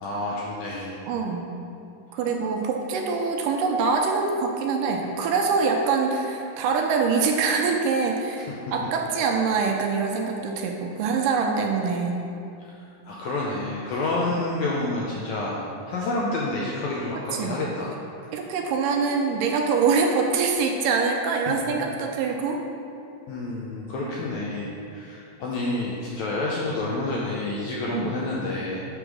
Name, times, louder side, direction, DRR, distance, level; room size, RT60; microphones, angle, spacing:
voice 1, 0.0-1.0 13.1-18.0 23.3-28.9, left 2 dB, 80° left, -4 dB, 1.7 m, -29 dB
voice 2, 1.1-1.5 2.1-12.1 14.3-14.4 17.3-17.6 18.3-22.6 24.0-24.1 27.9-28.2, right 5 dB, 80° right, 2 dB, 2.2 m, -24 dB
7.9 x 3.6 x 6.1 m, 2.6 s
omnidirectional pair, 4.0 m